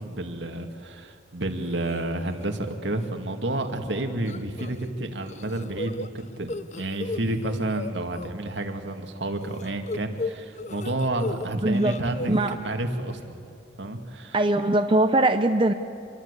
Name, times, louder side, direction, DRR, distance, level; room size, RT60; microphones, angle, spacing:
voice 1, 0.0-13.2 13.8-14.4, right 1 dB, 75° right, 5 dB, 2.2 m, -30 dB
sound 1, 1.6-2.0 2.4-2.7 3.0-3.1 4.3-4.9 5.2-8.3 9.4-11.5 11.7-12.5, left 2 dB, 40° left, 0.7 m, -35 dB
voice 2, 11.6-12.0 12.3-12.5 14.3-15.7, right 2 dB, 25° right, 7 dB, 0.7 m, -21 dB
27.0 x 22.5 x 8.3 m, 2.4 s
head